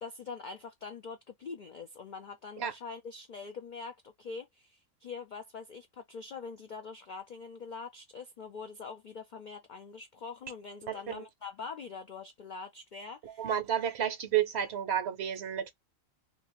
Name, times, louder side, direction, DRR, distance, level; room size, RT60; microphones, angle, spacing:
voice 1, 0.0-13.5, left 5 dB, 65° left, 0.4 m, -44 dB
voice 2, 10.9-11.2 13.2-15.7, right 9 dB, 60° right, 0.8 m, -31 dB
2.5 x 2.4 x 2.9 m
omnidirectional pair, 1.4 m